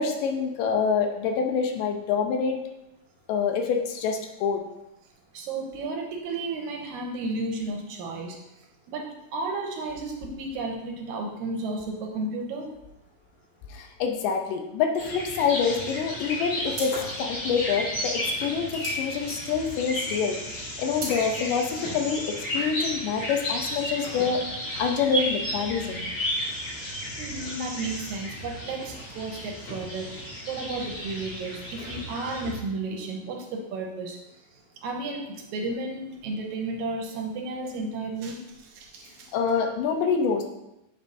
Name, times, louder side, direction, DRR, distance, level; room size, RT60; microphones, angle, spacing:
voice 1, 0.0-2.6 3.3-4.6 13.7-24.4 24.8-26.1 39.3-40.4, left 6 dB, 80° left, 4 dB, 2.3 m, -26 dB
voice 2, 5.3-8.4 8.9-12.7 27.2-34.2 34.8-39.3, right 3 dB, 75° right, 2 dB, 1.9 m, -33 dB
sound 1, 15.0-32.6, equal, 55° left, 3.6 m, -33 dB
sound 2, 16.0-16.3 16.7-20.1 20.4-21.2, right 2 dB, 45° right, 1.3 m, -39 dB
7.8 x 5.2 x 2.7 m, 0.90 s
omnidirectional pair, 3.9 m